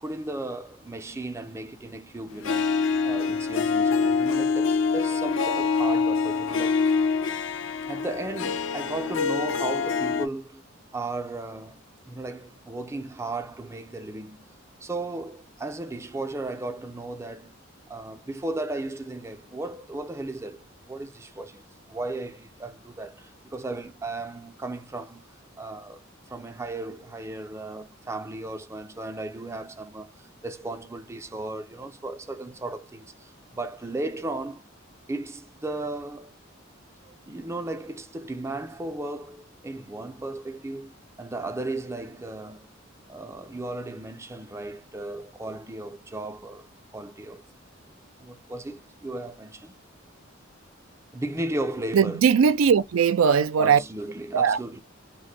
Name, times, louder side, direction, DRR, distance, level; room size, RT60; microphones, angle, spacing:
voice 1, 0.0-2.7 3.0-6.9 7.9-10.6 10.9-11.8 12.1-14.5 14.8-17.6 17.9-25.2 25.6-26.0 26.3-34.6 35.1-36.3 37.0-40.9 41.2-42.7 43.1-46.7 46.9-47.4 48.2-49.7 51.1-52.2 53.6-54.8, right 2 dB, 15° right, 0.4 m, -35 dB
Harp, 2.4-10.3, left 5 dB, 65° left, 0.4 m, -25 dB
voice 2, 51.9-53.8 54.3-54.6, right 6 dB, 80° right, 0.4 m, -19 dB
2.5 x 2.1 x 3.9 m
head